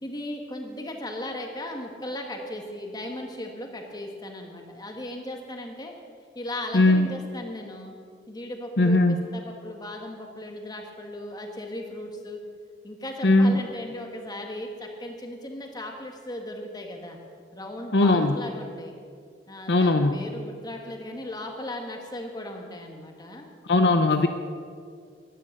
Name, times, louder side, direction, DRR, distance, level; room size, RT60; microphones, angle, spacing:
voice 1, 0.0-5.9 6.3-7.9 8.3-12.4 12.8-17.2 17.5-18.9 19.5-23.5, left 1 dB, 25° left, 2 dB, 1.8 m, -37 dB
voice 2, 6.7-7.1 8.8-9.2 13.2-13.6 17.9-18.4 19.7-20.2 23.7-24.3, left 2 dB, 70° left, 7 dB, 0.8 m, -19 dB
15.0 x 11.0 x 6.7 m, 2.1 s
head